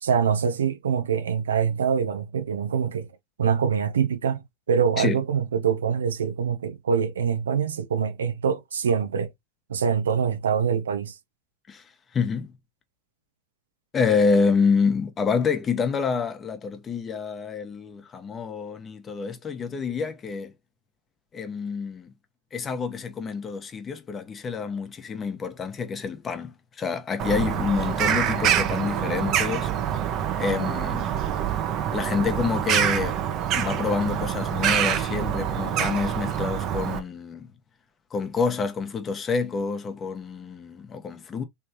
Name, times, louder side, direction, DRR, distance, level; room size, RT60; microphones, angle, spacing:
voice 1, 0.0-3.1 3.4-9.3 9.7-11.1, right 7 dB, 85° right, 0.6 m, -24 dB
voice 2, 12.1-12.5 13.9-20.5 21.3-22.1 22.5-29.7 30.4-31.1 31.9-33.2 33.5-37.5 38.1-41.4, left 5 dB, 30° left, 1.1 m, -27 dB
Bird vocalization bird call bird song, 27.2-37.0, right 9 dB, 50° right, 0.9 m, -26 dB
3.4 x 3.3 x 2.9 m
hypercardioid pair, 85°, 0 cm